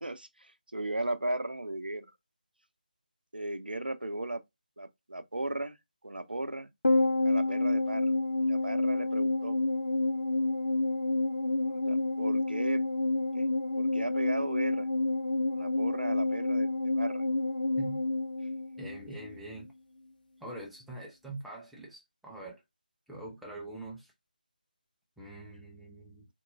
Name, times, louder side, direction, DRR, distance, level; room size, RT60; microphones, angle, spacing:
voice 1, 0.0-2.1 3.3-4.4 4.8-5.8 6.0-6.7 7.2-8.1 8.4-9.6 11.6-12.8 13.3-13.4 13.8-14.9 15.5-16.7 17.0-17.2 19.1-19.2, right 1 dB, 80° right, 0.6 m, -36 dB
sound 1, 6.8-19.4 19.6-19.7, left 2 dB, 70° left, 0.9 m, -29 dB
voice 2, 18.8-19.7 20.4-22.6 23.1-24.1 25.2-26.3, right 2 dB, ahead, 0.5 m, -44 dB
3.9 x 3.6 x 2.5 m
figure-of-eight pair, 155°, 5 cm